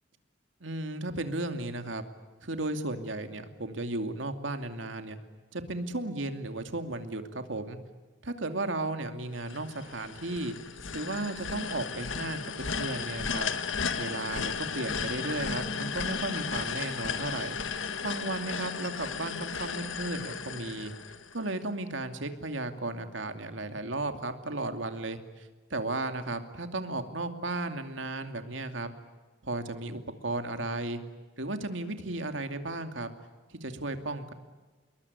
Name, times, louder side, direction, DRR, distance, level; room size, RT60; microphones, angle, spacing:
voice 1, 0.6-2.0 2.4-5.2 5.5-7.8 8.2-10.5 10.9-13.5 14.0-20.9 21.3-28.9 29.4-31.0 31.4-33.1 33.5-34.3, right 2 dB, 75° right, 7 dB, 2.6 m, -35 dB
sound 1, 9.5-21.6, left 5 dB, 85° left, 1.7 m, -35 dB
27.5 x 22.0 x 9.6 m, 1.3 s
head